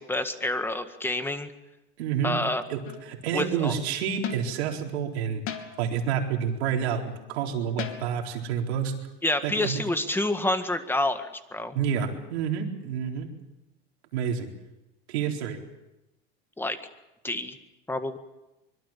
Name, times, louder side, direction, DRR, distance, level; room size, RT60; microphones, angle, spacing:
voice 1, 0.0-1.5 2.2-2.6 3.3-3.8 9.2-11.8 16.6-16.8 17.2-17.6 17.9-18.2, left 1 dB, 5° left, 9 dB, 1.8 m, -28 dB
voice 2, 2.0-2.4 2.7-5.4 5.8-8.9 9.4-9.8 11.7-13.3 14.1-14.5 15.1-15.6, right 7 dB, 90° right, 2 dB, 4.2 m, -29 dB
sound 1, 2.8-3.2 4.2-4.6 5.5-6.0 7.8-8.3 9.6-9.7, left 9 dB, 45° left, 3.0 m, -37 dB
24.5 x 22.5 x 7.4 m, 0.96 s
supercardioid pair, 130°, 31 cm